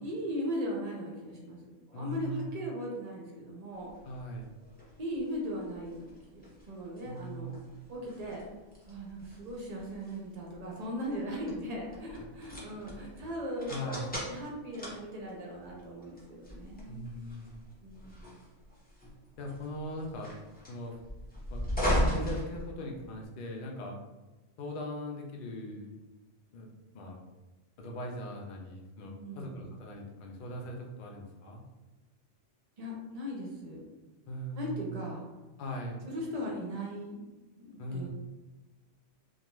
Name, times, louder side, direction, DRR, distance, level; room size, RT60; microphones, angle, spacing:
voice 1, 0.0-1.6 1.9-3.9 5.0-7.6 7.9-8.4 8.9-13.9 14.2-17.1 17.8-18.4 29.2-29.6 32.8-33.8 34.5-35.2 36.1-37.2 37.6-38.1, equal, 50° right, -2 dB, 0.5 m, -38 dB
voice 2, 1.9-2.5 4.0-4.5 7.0-7.7 13.7-14.1 16.9-17.6 19.4-20.3 20.7-20.9 21.5-21.6 22.1-24.0 24.6-25.9 26.5-27.2 27.8-31.6 34.3-35.1 35.6-36.0 37.8-38.1, equal, 60° left, 0 dB, 0.6 m, -40 dB
sound 1, 3.9-23.3, equal, 10° left, 0.4 m, -38 dB
2.4 x 2.2 x 2.9 m, 1.1 s
omnidirectional pair, 1.3 m